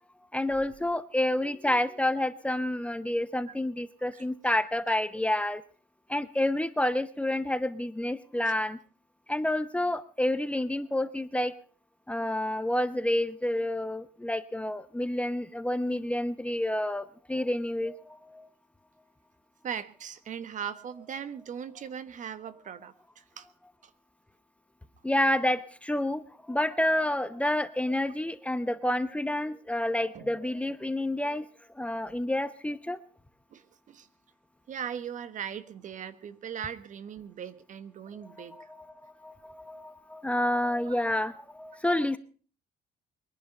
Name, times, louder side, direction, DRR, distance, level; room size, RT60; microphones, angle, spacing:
voice 1, 0.3-5.6 6.1-8.8 9.3-11.5 12.1-18.5 25.0-31.5 31.7-33.0 38.4-38.8 39.0-42.2, left 1 dB, 5° left, 12 dB, 0.9 m, -29 dB
voice 2, 19.6-23.5 23.8-23.9 30.1-30.3 33.5-34.1 34.7-38.7 40.9-41.1, right 8 dB, 50° right, 14 dB, 1.3 m, -39 dB
22.5 x 11.0 x 5.5 m, 0.40 s
cardioid pair, 110°, 17 cm